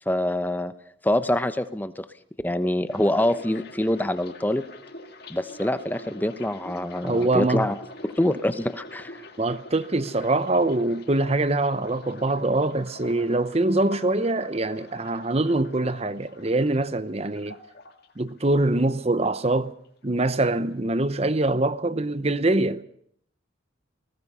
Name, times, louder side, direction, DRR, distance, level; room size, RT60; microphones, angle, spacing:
voice 1, 0.1-0.7 1.0-2.1 2.4-4.6 5.3-9.2, left 1 dB, 10° left, 0.9 m, -25 dB
sound 1, 2.9-18.9 19.1-20.1 20.3-20.7, left 2 dB, 50° left, 2.0 m, -44 dB
voice 2, 7.0-7.7 9.4-17.6 18.2-19.7 20.0-22.8, right 2 dB, 30° right, 0.8 m, -24 dB
30.0 x 19.0 x 5.6 m
head